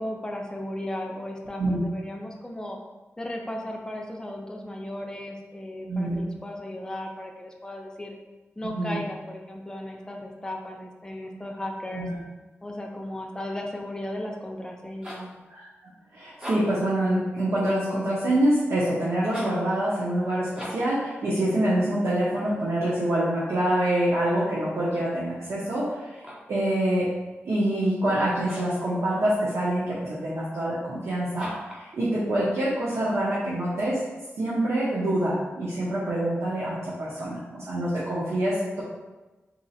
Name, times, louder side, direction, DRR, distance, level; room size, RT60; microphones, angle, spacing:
voice 1, 0.0-2.8 3.2-8.2 8.6-12.1 12.6-15.3, left 1 dB, 15° left, 1 dB, 0.6 m, -35 dB
voice 2, 5.9-6.2 8.7-9.0 11.9-12.1 15.5-15.6 16.1-26.2 26.5-27.1 27.4-34.0 34.4-38.8, right 1 dB, 80° right, -8 dB, 1.0 m, -26 dB
sound 1, 14.7-15.4 16.3-16.9 19.2-19.7 20.5-21.0 26.0-26.6 28.4-28.8 31.3-31.9, equal, 15° right, 0.9 m, -40 dB
3.7 x 2.9 x 4.2 m, 1.1 s
wide cardioid pair, 130°, 4 cm